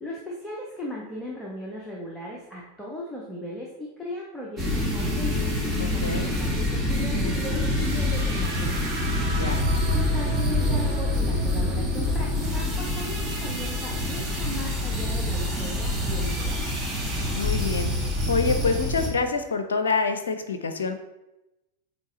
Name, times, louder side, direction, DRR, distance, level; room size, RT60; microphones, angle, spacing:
voice 1, 0.0-9.0 9.5-16.6, equal, 5° left, -4 dB, 1.0 m, -37 dB
sound 1, 4.6-19.1, left 1 dB, 10° right, 1.3 m, -26 dB
voice 2, 5.8-6.3 9.3-9.6 17.3-17.9 18.3-20.9, left 4 dB, 65° left, 8 dB, 0.5 m, -26 dB
sound 2, 7.5-15.5, right 3 dB, 70° right, 1.7 m, -41 dB
8.0 x 3.0 x 4.1 m, 0.97 s
figure-of-eight pair, 90°, 0 cm